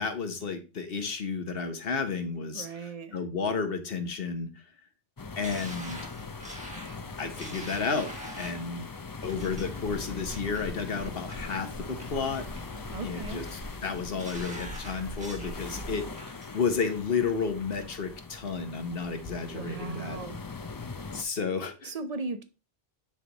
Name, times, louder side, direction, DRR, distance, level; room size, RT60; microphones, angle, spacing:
voice 1, 0.0-2.7 3.1-4.5 5.4-6.0 7.2-8.1 8.4-8.9 9.2-12.5 13.0-13.4 13.8-20.2 21.1-21.9, left 5 dB, 60° left, 1.3 m, -32 dB
voice 2, 2.5-3.2 12.9-13.5 19.5-20.4 21.8-22.4, right 3 dB, 40° right, 0.9 m, -37 dB
sound 1, 5.2-21.2, left 4 dB, 30° left, 0.4 m, -42 dB
sound 2, 5.4-8.7 9.3-9.6 10.1-10.6 11.0-11.6 12.0-12.7 13.0-13.5 13.9-15.6 15.9-16.5 16.9-17.0, equal, 5° right, 1.4 m, -45 dB
sound 3, 9.2-16.1, left 1 dB, 90° left, 1.9 m, -42 dB
10.0 x 3.4 x 4.0 m
omnidirectional pair, 1.1 m